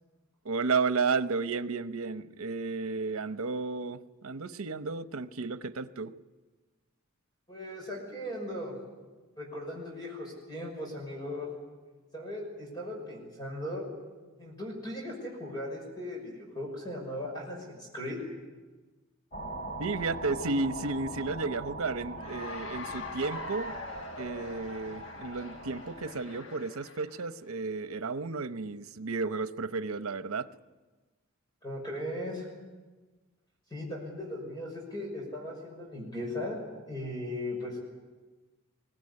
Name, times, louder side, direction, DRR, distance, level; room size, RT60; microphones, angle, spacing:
voice 1, 0.4-6.1 19.8-23.7 24.2-30.5, right 4 dB, 85° right, 12 dB, 0.9 m, -33 dB
voice 2, 7.5-8.8 9.4-11.5 12.1-13.9 14.4-18.2 31.6-32.5 33.7-36.6 36.9-37.8, left 1 dB, 20° left, -1 dB, 6.0 m, -38 dB
sound 1, 19.3-26.1, right 2 dB, 40° left, 3.0 m, -42 dB
Cheering / Applause, 22.1-27.3, left 3 dB, 60° left, 1.4 m, -43 dB
23.0 x 19.0 x 9.8 m, 1.3 s
head